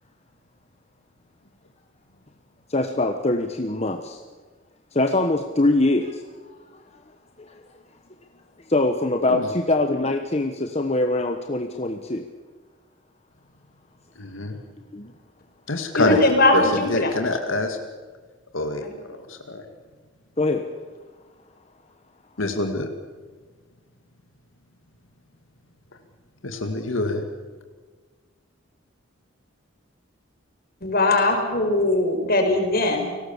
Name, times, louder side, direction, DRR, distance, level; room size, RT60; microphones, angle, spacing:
voice 1, 2.7-4.2 4.9-6.6 7.5-7.6 8.7-12.2 14.9-15.1 16.0-16.2 20.4-20.7, left 2 dB, 30° left, 5 dB, 1.2 m, -23 dB
voice 2, 14.2-14.6 15.7-16.2 16.5-17.8 18.5-18.8 19.1-19.6 22.4-22.9 26.4-27.2, left 2 dB, 80° left, 5 dB, 2.2 m, -26 dB
voice 3, 16.0-17.1 18.8-18.9 30.8-33.2, left 2 dB, 50° left, 4 dB, 4.9 m, -20 dB
30.0 x 19.5 x 7.2 m, 1.4 s
head